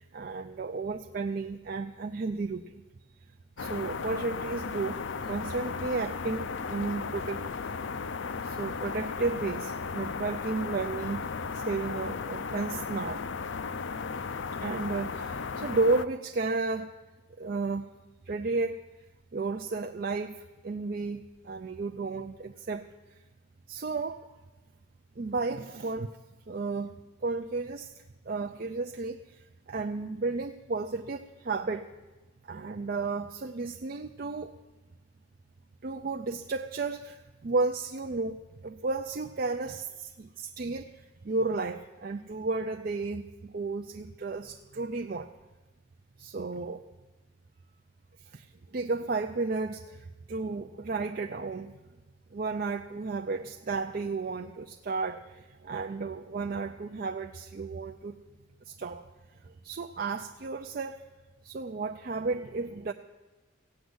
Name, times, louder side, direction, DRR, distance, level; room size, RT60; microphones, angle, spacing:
voice 1, 0.0-2.7 3.6-5.0 5.3-7.4 8.4-11.2 11.5-13.2 14.6-16.9 17.4-17.9 18.3-18.8 19.3-22.9 23.7-24.3 25.2-26.2 26.5-26.9 27.2-27.9 28.3-31.9 32.4-34.5 35.8-45.3 46.2-46.8 48.3-51.8 52.3-58.2 58.7-59.1 59.4-61.0 61.4-62.9, right 3 dB, 45° right, 5 dB, 0.5 m, -33 dB
sound 1, 3.6-16.0, left 5 dB, 70° left, 0.5 m, -35 dB
15.5 x 9.2 x 7.9 m, 1.2 s
head